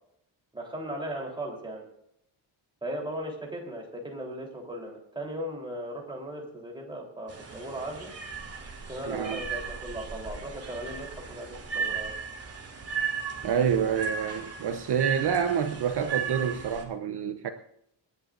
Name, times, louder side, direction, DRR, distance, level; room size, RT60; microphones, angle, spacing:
voice 1, 0.5-1.9 2.8-8.1 8.9-12.1, right 1 dB, 10° right, 3.6 m, -37 dB
sound 1, 7.3-16.8, right 6 dB, 30° right, 2.9 m, -36 dB
voice 2, 9.1-9.4 13.4-17.5, right 7 dB, 55° right, 1.0 m, -27 dB
27.0 x 11.0 x 2.6 m
wide cardioid pair, 180°, 46 cm